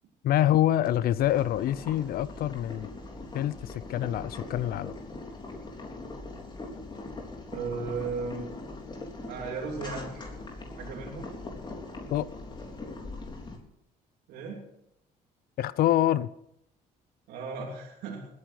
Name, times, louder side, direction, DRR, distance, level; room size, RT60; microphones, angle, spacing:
voice 1, 0.2-2.9 3.3-4.9 12.1-12.3 15.6-16.3, left 12 dB, 70° left, 0.6 m, -26 dB
Boiling, 0.8-13.6, left 2 dB, 30° left, 3.9 m, -41 dB
voice 2, 7.5-8.5 9.2-10.3 10.8-11.3 14.3-14.6 17.3-18.2, right 4 dB, 85° right, 3.1 m, -35 dB
20.0 x 9.7 x 6.0 m
cardioid pair, 95°, 16 cm